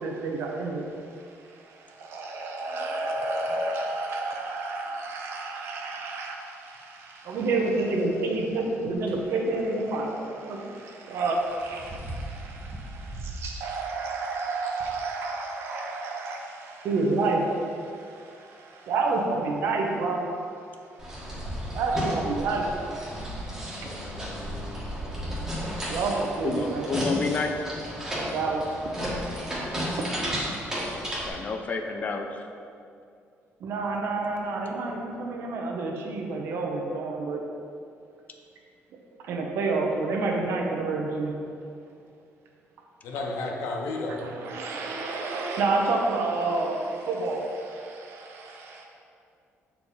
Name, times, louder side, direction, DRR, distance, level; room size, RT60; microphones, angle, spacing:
voice 1, 0.0-20.3 21.7-24.0 25.9-26.9 28.3-28.8 30.0-30.1 33.6-37.4 39.2-41.4 44.2-48.8, right 3 dB, 65° right, 0 dB, 0.9 m, -29 dB
sound 1, 9.1-9.2 11.1-13.5 13.9-14.0 14.8-14.9, right 1 dB, 35° right, 1.1 m, -38 dB
sound 2, 21.0-31.3, equal, 10° right, 1.4 m, -33 dB
voice 2, 26.4-27.6 31.2-32.4 43.1-43.4, left 4 dB, 35° left, 5 dB, 0.5 m, -30 dB
voice 3, 43.0-44.2, left 2 dB, 85° left, 0 dB, 1.0 m, -31 dB
7.2 x 4.5 x 4.1 m, 2.4 s
cardioid pair, 170°, 5 cm